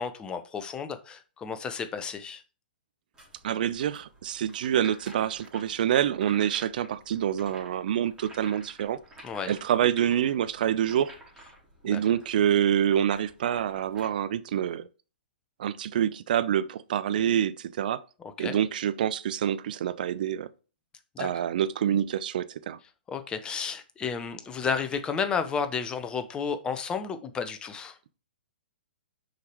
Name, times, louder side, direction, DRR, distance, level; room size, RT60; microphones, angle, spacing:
voice 1, 0.0-2.4 9.2-9.5 11.8-12.0 18.4-18.6 21.1-21.3 23.1-28.0, left 6 dB, 15° left, 0.9 m, -32 dB
sound 1, 3.1-14.1, right 1 dB, 10° right, 3.3 m, -51 dB
voice 2, 3.4-9.0 9.5-11.1 11.8-14.9 15.6-18.0 18.4-20.5 21.2-22.8, right 10 dB, 55° right, 0.6 m, -26 dB
6.5 x 4.8 x 4.7 m
figure-of-eight pair, 120°, 6 cm